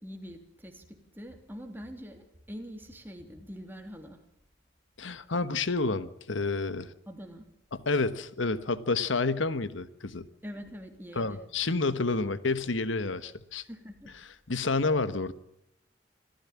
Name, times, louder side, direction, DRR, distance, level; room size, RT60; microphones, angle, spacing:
voice 1, 0.0-4.2 7.1-7.5 10.4-11.4 13.6-14.1, equal, 10° right, 4 dB, 3.0 m, -44 dB
voice 2, 5.0-6.9 7.7-10.3 11.1-13.6 14.5-15.3, left 3 dB, 90° left, 14 dB, 1.2 m, -29 dB
26.0 x 14.5 x 7.3 m, 0.79 s
head